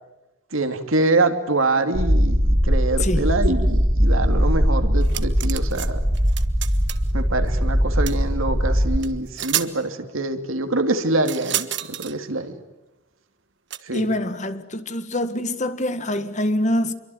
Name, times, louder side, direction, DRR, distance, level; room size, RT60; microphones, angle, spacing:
voice 1, 0.5-6.0 7.1-12.5 13.8-14.1, right 2 dB, 85° right, 2.7 m, -24 dB
sound 1, 1.9-9.0, equal, 15° right, 1.7 m, -20 dB
sound 2, 5.0-5.9 6.1-7.1 8.1-8.2 9.0-9.1 9.4-9.7 11.2-12.1 13.7-13.8, right 12 dB, 60° right, 1.4 m, -29 dB
voice 2, 13.9-16.9, left 1 dB, 35° left, 1.7 m, -25 dB
27.0 x 23.5 x 9.3 m
head